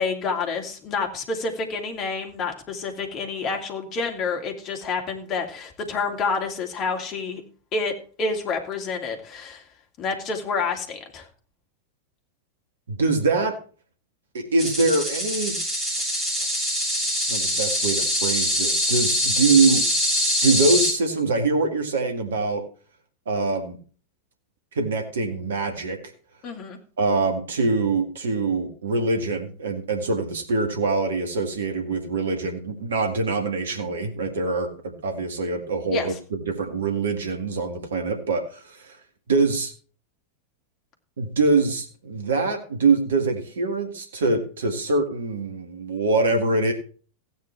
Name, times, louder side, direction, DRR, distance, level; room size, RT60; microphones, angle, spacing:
voice 1, 0.0-7.4 7.7-9.6 10.0-11.3 26.4-26.8 35.9-36.1, left 4 dB, 30° left, 2 dB, 2.7 m, -28 dB
voice 2, 12.9-13.6 14.3-15.6 17.3-19.9 20.4-22.6 23.3-23.8 24.8-26.0 27.0-39.0 39.3-39.7 41.2-46.7, right 3 dB, 65° right, 4 dB, 2.0 m, -24 dB
sound 1, 14.6-20.9, left 1 dB, 15° right, 7.3 m, -24 dB
16.0 x 9.3 x 3.4 m, 0.39 s
figure-of-eight pair, 90°, 0 cm